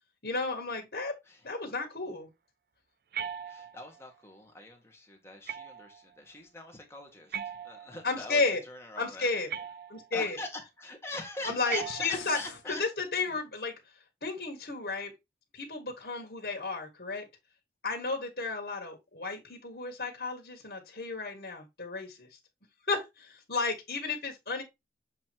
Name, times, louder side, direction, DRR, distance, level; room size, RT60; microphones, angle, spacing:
voice 1, 0.2-1.1 1.4-2.3 8.0-8.6 9.0-9.5 9.9-10.4 11.4-12.4 12.7-13.7 14.2-15.1 15.5-17.3 17.8-22.3 22.9-24.6, left 3 dB, 60° left, 1.7 m, -33 dB
sound 1, 3.1-4.0 5.5-6.0 7.3-8.2 9.5-10.2 11.7-12.6, right 8 dB, 55° right, 0.4 m, -39 dB
voice 2, 3.5-7.4 7.6-9.6 10.1-12.8 13.3-13.4, left 2 dB, 15° left, 1.4 m, -43 dB
sound 2, 11.7-12.7, left 7 dB, 90° left, 1.0 m, -47 dB
7.3 x 3.1 x 4.5 m
head